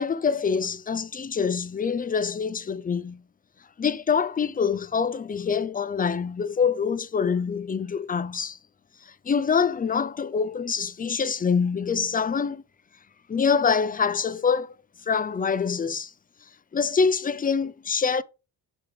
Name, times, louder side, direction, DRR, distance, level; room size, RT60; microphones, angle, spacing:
voice 1, 0.0-3.2 3.8-8.6 9.0-12.6 13.3-14.7 15.1-16.1 16.7-18.2, left 6 dB, 20° left, 0.5 m, -25 dB
5.7 x 5.1 x 3.4 m
supercardioid pair, 50°, 43 cm